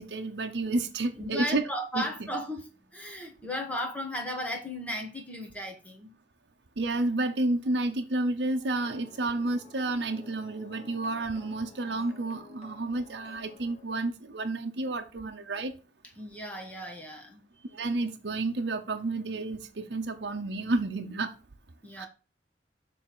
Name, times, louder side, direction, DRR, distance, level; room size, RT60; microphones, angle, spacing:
voice 1, 0.0-1.7 1.9-2.3 6.8-15.7 17.7-21.3 22.0-22.1, right 2 dB, 70° right, 0.8 m, -30 dB
voice 2, 1.2-6.1 16.2-17.4 21.8-22.1, equal, 10° left, 1.5 m, -35 dB
sound 1, 8.7-13.9, left 3 dB, 40° left, 1.0 m, -53 dB
7.0 x 3.5 x 6.0 m
head